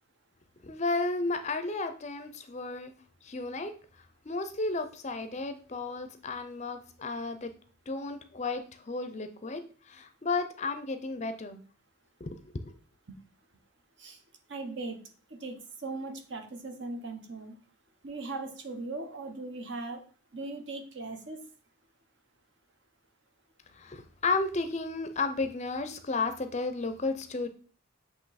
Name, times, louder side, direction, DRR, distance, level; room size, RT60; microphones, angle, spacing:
voice 1, 0.6-2.9 3.2-3.7 4.2-7.5 7.9-9.6 9.9-11.6 12.2-12.8 23.7-27.5, left 3 dB, 35° left, 8 dB, 0.5 m, -33 dB
voice 2, 14.5-15.0 15.3-17.6 18.0-20.0 20.3-21.5, right 3 dB, 55° right, 5 dB, 1.0 m, -39 dB
7.8 x 2.9 x 4.1 m, 0.41 s
head